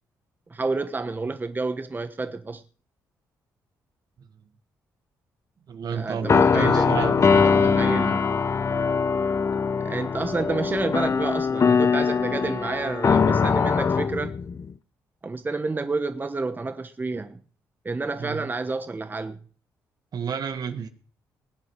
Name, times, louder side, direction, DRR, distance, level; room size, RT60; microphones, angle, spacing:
voice 1, 0.5-2.6 5.9-7.1 7.4-8.1 9.8-14.4 15.2-17.4 17.8-19.4, right 3 dB, 25° right, 1.1 m, -29 dB
voice 2, 5.7-8.2 18.2-18.5 20.1-20.9, right 7 dB, 60° right, 1.6 m, -31 dB
sound 1, 6.2-14.7, left 5 dB, 40° left, 0.7 m, -22 dB
19.5 x 8.2 x 6.2 m
supercardioid pair, 70°, 8 cm